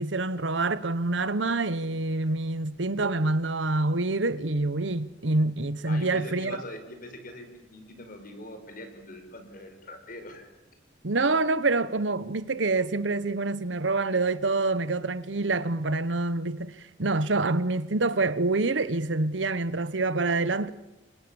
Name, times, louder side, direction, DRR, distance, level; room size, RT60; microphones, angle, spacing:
voice 1, 0.0-6.6 11.0-20.7, right 3 dB, 85° right, 1.2 m, -26 dB
voice 2, 5.9-10.5, left 1 dB, 50° left, 5.4 m, -43 dB
29.5 x 25.5 x 7.2 m
head